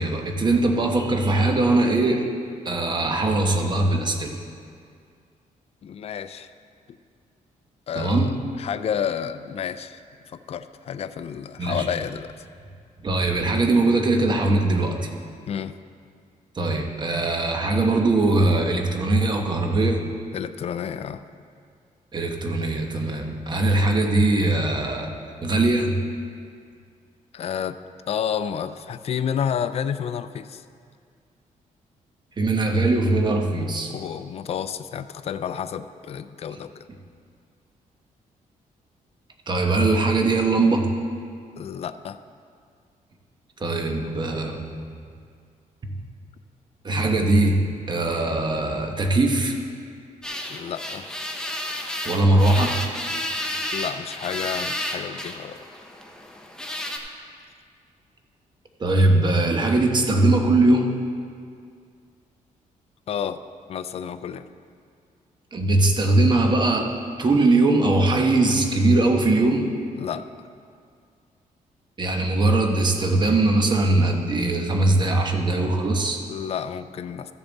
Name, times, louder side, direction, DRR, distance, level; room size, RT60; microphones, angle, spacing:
voice 1, 0.0-2.3 2.6-4.4 7.9-8.4 11.6-11.9 13.0-15.1 16.5-20.0 22.1-25.1 25.4-26.0 32.4-33.9 36.5-36.6 39.5-40.9 43.6-44.6 45.8-45.9 46.8-49.6 52.0-52.8 58.8-60.9 65.5-66.9 67.2-69.7 72.0-76.2, right 2 dB, 30° right, 3 dB, 1.1 m, -21 dB
voice 2, 5.8-6.5 7.9-10.0 10.3-12.3 15.5-15.8 20.3-21.2 27.3-27.8 28.1-30.6 33.9-36.8 41.6-42.2 50.5-51.0 53.7-55.6 63.1-63.4 63.7-64.5 70.0-70.3 76.3-77.3, left 8 dB, 45° left, 11 dB, 0.4 m, -30 dB
sound 1, 50.2-57.0, left 1 dB, 5° left, 0.8 m, -32 dB
14.0 x 6.9 x 4.1 m, 2.2 s
cardioid pair, 120°, 14 cm